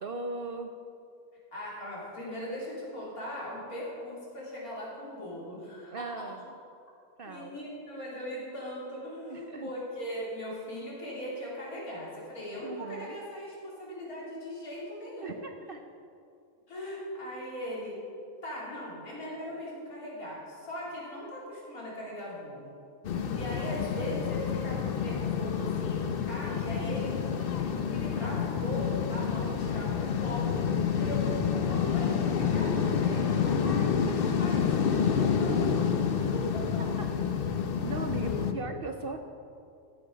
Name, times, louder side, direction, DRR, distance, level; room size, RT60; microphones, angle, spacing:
voice 1, 0.0-0.7 5.9-6.4 7.2-7.6 9.3-9.7 12.6-13.2 15.2-15.8 18.8-18.9 23.1-23.4 26.9-27.4 36.8-37.1 37.8-39.2, right 3 dB, 55° right, 6 dB, 0.6 m, -39 dB
voice 2, 1.5-6.3 7.3-15.4 16.7-17.9 18.4-22.7 23.3-27.1 27.5-36.8 38.3-38.5, left 1 dB, 90° left, -6 dB, 3.7 m, -39 dB
sound 1, 23.0-38.5, left 7 dB, 50° left, 0.8 m, -28 dB
14.5 x 8.4 x 5.2 m, 2.5 s
omnidirectional pair, 1.5 m